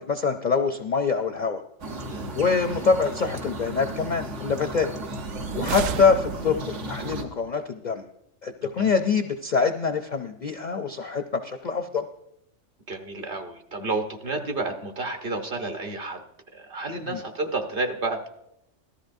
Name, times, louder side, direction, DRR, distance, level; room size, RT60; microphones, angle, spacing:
voice 1, 0.0-1.6 2.3-4.9 5.5-8.0 8.4-12.1 17.0-17.2, left 5 dB, 55° left, 6 dB, 0.5 m, -25 dB
sound 1, 1.8-7.2, right 1 dB, 65° right, 1.4 m, -35 dB
sound 2, 5.1-6.9, right 8 dB, 85° right, 1.0 m, -32 dB
voice 2, 12.9-16.2 16.5-18.3, right 2 dB, 45° right, 4 dB, 1.1 m, -31 dB
18.0 x 13.0 x 2.6 m, 0.81 s
omnidirectional pair, 1.3 m